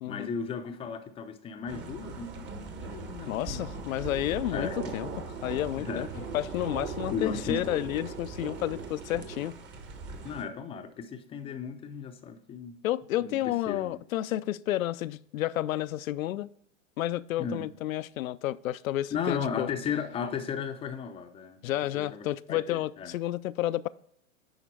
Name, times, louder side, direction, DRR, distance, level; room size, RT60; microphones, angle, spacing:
voice 1, 0.1-3.6 4.5-4.9 5.8-6.2 7.1-7.6 10.2-12.8 13.2-14.0 17.4-17.7 19.1-23.1, left 6 dB, 15° left, 0.5 m, -35 dB
sound 1, 1.7-10.4, right 4 dB, 25° right, 1.0 m, -39 dB
voice 2, 3.3-6.1 6.3-9.6 12.8-16.5 17.0-19.7 21.6-23.9, left 14 dB, 85° left, 0.5 m, -31 dB
10.5 x 4.1 x 4.6 m
hypercardioid pair, 125°, 40 cm